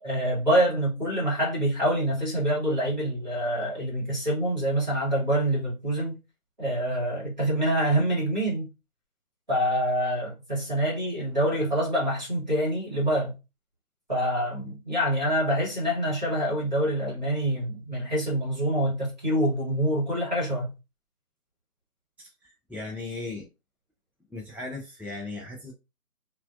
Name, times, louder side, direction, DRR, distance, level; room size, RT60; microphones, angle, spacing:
voice 1, 0.0-6.2 6.6-8.7 9.5-13.3 14.1-20.7, right 1 dB, 30° right, 1.0 m, -26 dB
voice 2, 22.2-23.5 24.3-25.7, left 2 dB, 5° right, 0.3 m, -37 dB
2.4 x 2.0 x 2.5 m
figure-of-eight pair, 180°, 46 cm